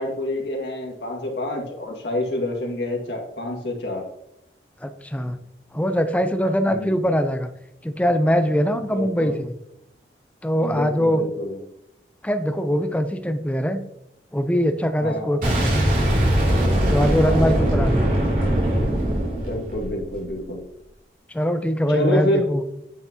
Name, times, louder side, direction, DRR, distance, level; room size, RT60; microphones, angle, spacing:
voice 1, 0.0-4.0 6.7-7.1 8.9-9.4 10.6-11.6 15.0-15.4 17.2-18.0 19.4-20.6 21.9-22.5, left 1 dB, 80° left, 0 dB, 2.0 m, -28 dB
voice 2, 4.8-5.4 5.7-7.5 7.8-9.5 10.4-11.2 12.2-13.8 14.3-15.8 16.9-18.2 21.3-22.6, equal, 10° left, 7 dB, 0.6 m, -22 dB
Boom, 15.4-20.3, right 1 dB, 50° right, 2.8 m, -21 dB
9.4 x 5.8 x 2.9 m, 0.82 s
head